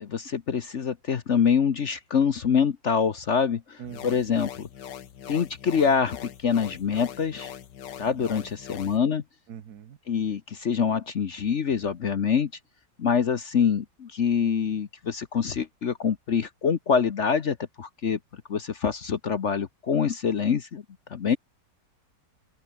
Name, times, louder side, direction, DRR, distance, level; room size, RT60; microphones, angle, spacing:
voice 1, 0.0-4.7 5.3-7.5 8.0-9.2 10.1-12.5 13.0-18.2 18.5-20.8 21.1-21.4, left 6 dB, 50° left, 1.1 m, -25 dB
sound 1, 3.8-9.0, left 10 dB, 75° left, 1.8 m, -42 dB
voice 2, 3.8-4.3 8.3-8.4 9.5-10.0, right 9 dB, 60° right, 1.6 m, -42 dB
open air
omnidirectional pair, 1.9 m